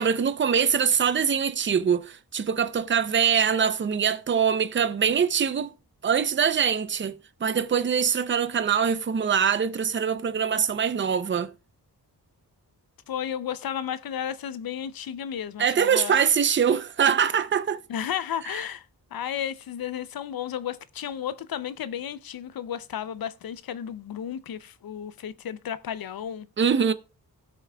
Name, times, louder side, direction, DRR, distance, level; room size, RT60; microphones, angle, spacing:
voice 1, 0.0-5.7 6.0-11.5 15.6-17.8 26.6-26.9, right 7 dB, 30° right, 0.5 m, -23 dB
voice 2, 13.1-16.1 17.9-18.8 19.1-26.5, left 9 dB, 65° left, 0.5 m, -33 dB
17.0 x 5.8 x 2.2 m
wide cardioid pair, 135°, 38 cm